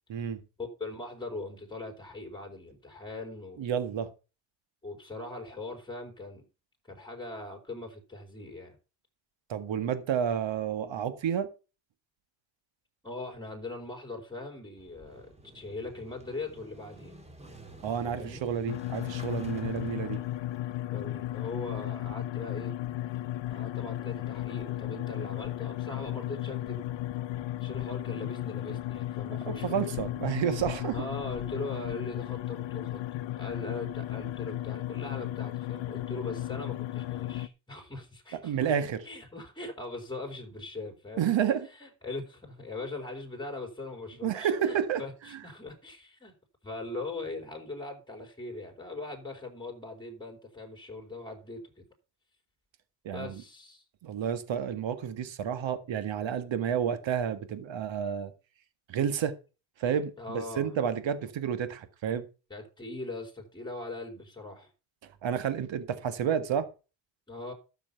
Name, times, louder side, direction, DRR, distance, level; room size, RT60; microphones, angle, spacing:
voice 1, 0.6-3.6 4.8-6.5 6.9-8.7 13.0-17.1 18.0-18.5 20.9-22.7 23.5-26.9 27.6-29.9 30.9-38.7 39.0-41.3 41.7-46.3 46.6-51.9 53.1-53.8 60.2-60.7 62.5-64.7 67.3-67.5, left 2 dB, 10° left, 4.7 m, -40 dB
voice 2, 3.6-4.1 9.5-11.5 17.8-20.2 29.5-31.0 38.3-39.0 41.2-41.7 44.2-45.0 53.1-53.4 54.0-58.3 58.9-59.3 59.8-62.3 65.2-66.7, right 8 dB, 75° right, 1.9 m, -30 dB
Motorcycle / Engine starting, 14.8-20.6, right 2 dB, 15° right, 3.3 m, -50 dB
sound 1, 18.7-37.5, left 14 dB, 70° left, 0.9 m, -35 dB
12.5 x 7.1 x 5.7 m
cardioid pair, 85°, 45 cm